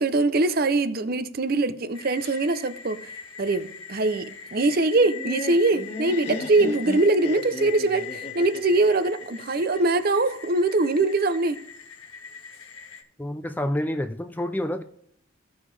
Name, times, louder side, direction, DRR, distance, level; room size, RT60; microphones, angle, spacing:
voice 1, 0.0-3.0 3.4-11.6, right 2 dB, 45° right, 0.5 m, -22 dB
sound 1, 1.9-13.0, left 7 dB, 80° left, 1.5 m, -41 dB
Laughter, 4.9-10.0, left 1 dB, 30° left, 1.6 m, -36 dB
voice 2, 13.2-14.8, left 1 dB, 10° left, 0.4 m, -28 dB
16.0 x 5.5 x 3.3 m
head